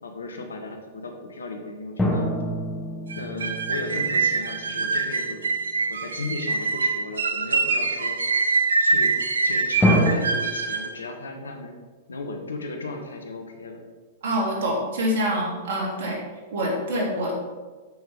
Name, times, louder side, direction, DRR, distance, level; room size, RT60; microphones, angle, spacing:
voice 1, 0.0-2.3 3.2-5.4 5.9-8.2 8.8-9.1 9.4-11.8 12.1-13.8, left 3 dB, 80° left, 4 dB, 1.4 m, -35 dB
sound 1, 2.0-4.9 9.8-10.1, equal, 10° left, 1.5 m, -25 dB
sound 2, 3.1-10.9, right 4 dB, 80° right, 0.8 m, -24 dB
voice 2, 14.2-16.2 16.5-17.4, equal, 65° right, -2 dB, 3.0 m, -25 dB
13.5 x 6.0 x 3.7 m, 1.4 s
hypercardioid pair, 105°, 0 cm